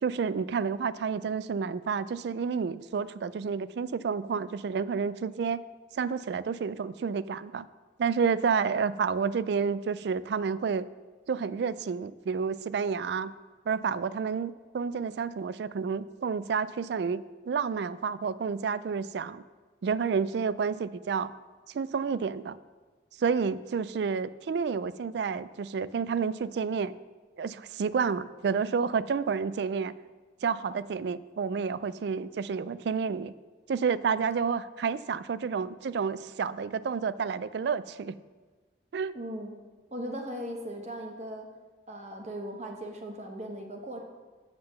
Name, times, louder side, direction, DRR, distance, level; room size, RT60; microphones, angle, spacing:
voice 1, 0.0-5.6 5.9-7.7 8.0-10.9 11.3-13.3 13.7-19.4 19.8-21.3 21.7-22.6 23.2-26.9 27.4-29.9 30.4-33.3 33.7-38.2 38.9-39.1, right 6 dB, 65° right, 16 dB, 0.3 m, -30 dB
voice 2, 39.1-39.5 39.9-41.5 41.9-44.0, equal, 35° right, 2 dB, 1.0 m, -38 dB
7.8 x 5.9 x 6.4 m, 1.4 s
head